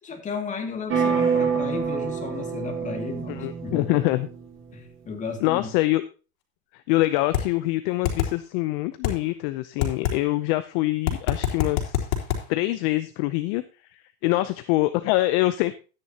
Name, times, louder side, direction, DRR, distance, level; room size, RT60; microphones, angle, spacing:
voice 1, 0.0-4.0 4.7-5.7, left 5 dB, 15° left, 3 dB, 2.4 m, -34 dB
sound 1, 0.9-4.7, right 6 dB, 25° right, 3.0 m, -27 dB
voice 2, 3.3-4.3 5.4-6.0 6.7-12.1 12.5-13.6 13.9-15.7, left 18 dB, 45° left, 12 dB, 0.7 m, -24 dB
sound 2, 7.3-7.4 8.0-8.3 9.0-9.1 9.8-10.1 11.1-12.4, left 12 dB, 65° left, 3.3 m, -23 dB
13.0 x 9.8 x 2.9 m, 0.33 s
supercardioid pair, 135°, 44 cm